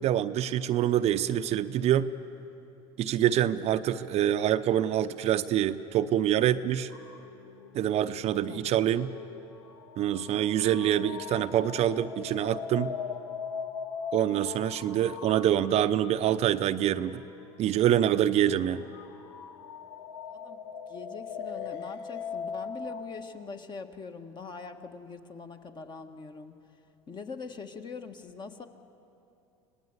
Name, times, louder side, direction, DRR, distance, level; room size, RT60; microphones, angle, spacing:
voice 1, 0.0-2.1 3.0-6.9 7.7-9.1 10.0-12.9 14.1-17.2 17.6-18.9, right 11 dB, 45° right, 10 dB, 0.7 m, -26 dB
sound 1, 6.9-16.2 16.9-17.1 18.6-23.0, left 6 dB, 75° left, 1.3 m, -40 dB
voice 2, 20.3-20.6 20.9-26.5 27.1-28.7, left 4 dB, 30° left, 6 dB, 1.5 m, -43 dB
25.5 x 18.5 x 8.1 m, 2.8 s
hypercardioid pair, 85°, 14 cm